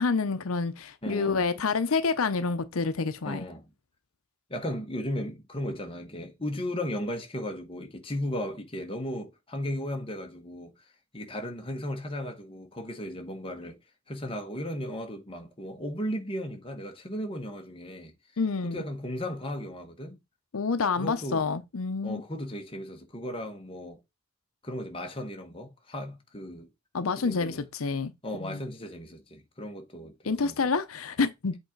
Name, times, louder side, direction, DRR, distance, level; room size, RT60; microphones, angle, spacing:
voice 1, 0.0-3.4 18.4-18.8 20.5-22.2 26.9-28.1 28.4-28.6 30.2-31.6, left 4 dB, 90° left, 0.7 m, -28 dB
voice 2, 1.0-1.4 3.2-3.7 4.5-10.7 11.1-13.8 14.1-18.1 18.6-20.2 21.0-21.4 22.0-24.0 24.6-26.7 27.2-27.6 28.2-30.6, left 1 dB, 25° left, 1.4 m, -36 dB
8.0 x 3.7 x 4.6 m
head